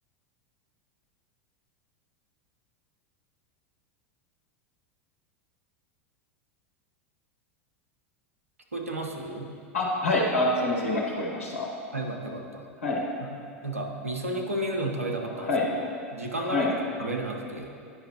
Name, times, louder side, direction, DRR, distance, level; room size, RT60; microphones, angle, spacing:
voice 1, 8.7-9.5 11.9-12.7 13.2-13.3 13.6-15.7 16.1-16.7 17.0-17.7, right 1 dB, 85° right, 1 dB, 0.7 m, -32 dB
voice 2, 9.7-11.7 12.8-13.0 15.4-15.7 16.4-16.7, left 2 dB, 70° left, -2 dB, 1.0 m, -26 dB
9.6 x 5.6 x 2.9 m, 2.4 s
figure-of-eight pair, 85°, 7 cm